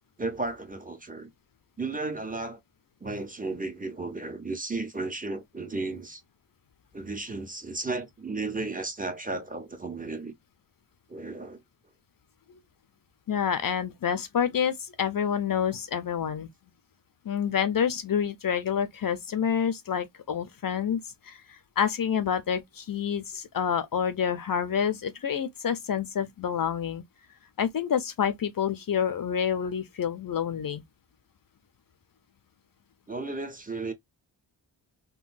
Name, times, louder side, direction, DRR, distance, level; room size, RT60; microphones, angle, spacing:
voice 1, 0.2-1.3 1.8-2.6 3.0-6.2 6.9-10.3 11.1-11.6 33.1-33.9, right 3 dB, 20° right, 0.6 m, -34 dB
voice 2, 13.3-16.5 17.2-27.0 27.6-30.8, left 8 dB, 55° left, 0.5 m, -28 dB
3.8 x 2.2 x 2.5 m
wide cardioid pair, 150°, 42 cm